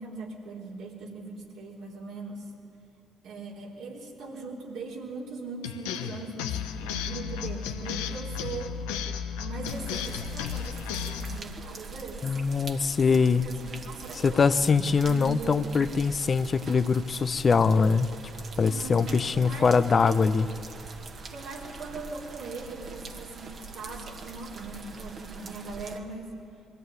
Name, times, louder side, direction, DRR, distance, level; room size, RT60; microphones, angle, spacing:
voice 1, 0.0-2.5 3.2-8.8 9.4-12.3 13.3-15.7 18.6-20.1 21.3-26.3, right 3 dB, 75° right, -2 dB, 3.6 m, -40 dB
sound 1, 5.6-11.4, left 7 dB, 85° left, 0.9 m, -34 dB
sound 2, 9.7-26.0, right 4 dB, 50° right, 1.9 m, -43 dB
voice 2, 12.2-13.4 14.2-18.1 18.6-20.5, left 5 dB, 45° left, 12 dB, 0.7 m, -23 dB
21.5 x 15.0 x 9.6 m, 2.7 s
hypercardioid pair, 55°, 0 cm